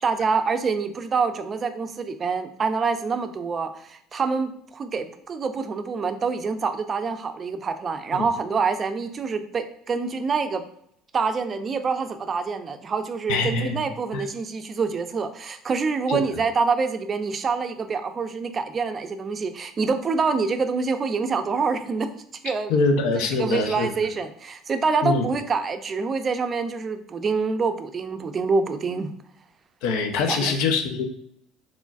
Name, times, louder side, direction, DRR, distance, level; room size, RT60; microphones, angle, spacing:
voice 1, 0.0-10.6 11.1-22.1 22.4-22.7 23.1-29.1 30.2-30.6, right 4 dB, 35° right, 9 dB, 0.4 m, -26 dB
voice 2, 13.3-13.8 14.1-14.2 16.1-16.2 22.7-23.9 25.0-25.3 29.8-31.0, left 4 dB, 75° left, 4 dB, 0.6 m, -23 dB
3.8 x 3.1 x 2.4 m, 0.69 s
supercardioid pair, 85°, 0 cm